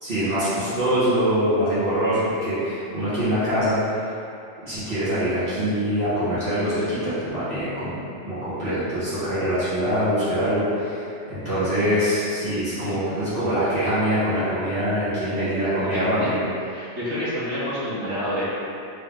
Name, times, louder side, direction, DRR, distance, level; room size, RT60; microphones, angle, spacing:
voice 1, 0.0-3.9 4.6-16.4, equal, 50° right, -14 dB, 1.6 m, -24 dB
voice 2, 16.6-18.4, equal, 75° right, -10 dB, 1.6 m, -28 dB
3.7 x 3.6 x 3.5 m, 2.6 s
omnidirectional pair, 1.2 m